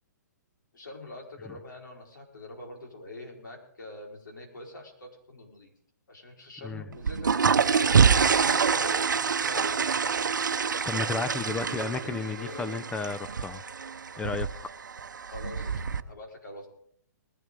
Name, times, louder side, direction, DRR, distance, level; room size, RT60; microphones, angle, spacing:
voice 1, 0.7-5.7 6.1-10.4 11.4-12.8 15.2-16.7, left 2 dB, 90° left, 0 dB, 4.5 m, -45 dB
sound 1, 6.9-16.0, right 6 dB, 85° right, 0.7 m, -26 dB
voice 2, 10.8-13.6 14.2-14.5, left 4 dB, 10° left, 13 dB, 0.5 m, -33 dB
20.0 x 12.5 x 3.8 m, 0.66 s
hypercardioid pair, 140°, 10 cm